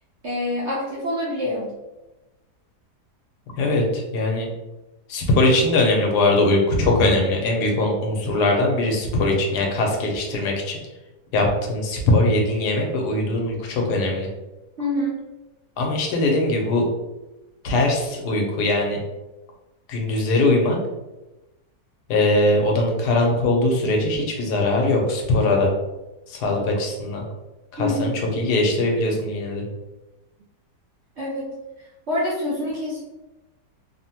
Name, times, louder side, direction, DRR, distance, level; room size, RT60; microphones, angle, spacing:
voice 1, 0.2-1.8 14.8-15.2 27.8-28.2 31.2-31.5 32.1-33.0, left 1 dB, 60° right, -6 dB, 0.7 m, -26 dB
voice 2, 3.6-4.5 5.1-10.8 11.3-14.3 15.8-16.9 17.6-19.0 19.9-20.8 22.1-25.7 26.3-27.2 27.7-29.6, left 2 dB, 75° left, 1 dB, 1.2 m, -21 dB
3.2 x 2.1 x 2.8 m, 1.0 s
omnidirectional pair, 1.8 m